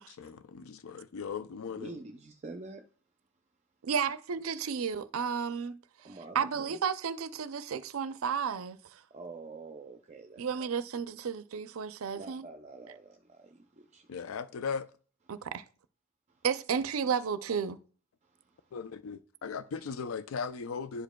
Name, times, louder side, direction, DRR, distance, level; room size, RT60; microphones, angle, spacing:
voice 1, 0.2-2.0 14.1-14.9 18.7-21.0, left 5 dB, 80° left, 0.4 m, -38 dB
voice 2, 1.7-2.8 6.0-6.8 9.1-10.7 12.2-14.2, right 3 dB, 35° right, 0.5 m, -47 dB
voice 3, 3.8-5.8 6.3-9.0 10.4-12.5 15.3-15.6 16.4-17.8, right 6 dB, 85° right, 0.5 m, -32 dB
11.5 x 5.0 x 2.2 m
head